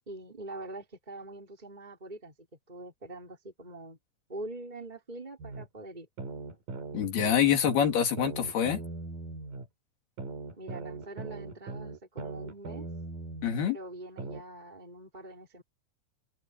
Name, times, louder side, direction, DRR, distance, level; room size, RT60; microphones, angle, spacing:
voice 1, 0.1-2.3 2.7-4.0 4.3-6.1 10.6-12.9 13.7-15.6, right 2 dB, 10° right, 4.6 m, -44 dB
sound 1, 5.4-5.7 6.2-9.7 10.2-13.7 14.2-14.4, right 3 dB, 60° right, 5.8 m, -40 dB
voice 2, 6.9-8.8 13.4-13.8, left 9 dB, 85° left, 4.8 m, -26 dB
omnidirectional pair, 4.4 m